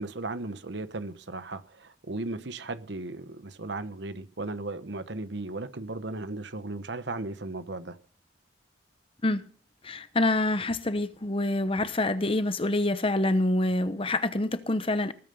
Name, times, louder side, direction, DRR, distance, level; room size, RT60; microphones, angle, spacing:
voice 1, 0.0-8.0, right 2 dB, 65° right, 1.0 m, -36 dB
voice 2, 9.8-15.1, left 2 dB, 30° left, 0.9 m, -26 dB
19.5 x 9.1 x 5.4 m
head